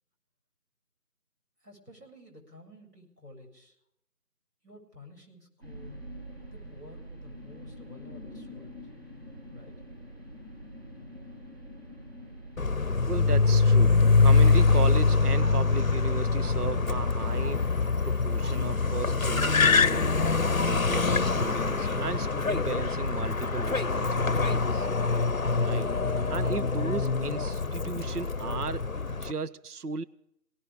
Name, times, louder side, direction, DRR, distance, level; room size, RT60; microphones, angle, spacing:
voice 1, 1.6-3.8 4.6-6.0 6.5-8.8 9.5-9.7, left 2 dB, 90° right, 0 dB, 7.3 m, -51 dB
sound 1, 5.6-19.5, equal, 40° right, 6.0 m, -46 dB
Car, 12.6-29.3, left 4 dB, 60° left, 0.7 m, -24 dB
voice 2, 13.1-17.7 18.0-20.2 20.6-24.9 25.6-25.9 26.3-30.0, right 5 dB, 70° right, 14 dB, 0.8 m, -36 dB
21.0 x 18.0 x 3.7 m, 0.75 s
figure-of-eight pair, 175°, 47 cm